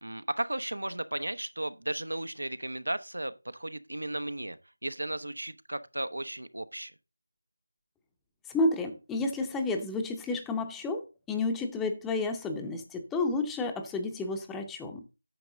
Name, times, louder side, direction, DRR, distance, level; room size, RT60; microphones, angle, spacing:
voice 1, 0.0-4.6 4.8-6.9, right 1 dB, 85° right, 0.9 m, -35 dB
voice 2, 8.5-15.0, left 2 dB, 5° left, 0.7 m, -31 dB
9.4 x 6.3 x 3.8 m
figure-of-eight pair, 170°, 0 cm